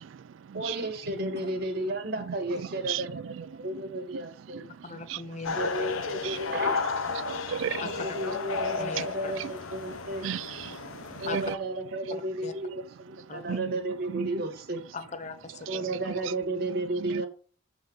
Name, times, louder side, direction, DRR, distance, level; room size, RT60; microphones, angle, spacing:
voice 1, 0.5-4.6 5.5-6.8 7.7-10.3 11.2-14.8 15.7-17.3, right 1 dB, 50° right, 1.5 m, -33 dB
voice 2, 4.8-5.9 7.8-8.1 8.8-9.3 11.3-11.4 12.4-12.5 13.3-13.6 14.9-16.0, left 4 dB, 35° left, 0.8 m, -39 dB
sound 1, 5.4-11.5, left 4 dB, 90° left, 0.8 m, -33 dB
voice 3, 7.2-7.8 10.2-10.8 11.3-11.4 13.5-13.7 14.1-14.3, right 9 dB, 70° right, 0.3 m, -33 dB
7.9 x 4.0 x 6.3 m
head